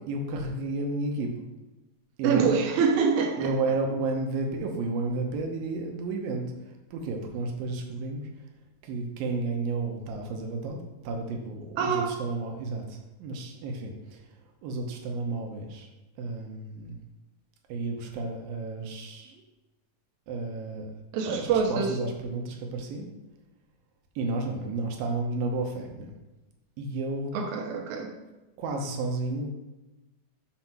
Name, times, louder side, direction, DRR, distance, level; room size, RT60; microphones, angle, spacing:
voice 1, 0.1-1.4 2.2-2.6 3.4-8.3 8.8-10.8 11.0-14.3 14.6-15.9 16.2-17.0 17.7-19.4 20.3-20.9 21.3-23.1 24.2-26.1 26.8-27.3 28.6-29.5, right 3 dB, 90° right, 2 dB, 2.6 m, -32 dB
voice 2, 2.2-3.5 11.8-12.2 21.1-22.0 27.3-28.1, right 6 dB, 65° right, 2 dB, 2.2 m, -25 dB
6.2 x 5.0 x 5.7 m, 1.0 s
omnidirectional pair, 4.1 m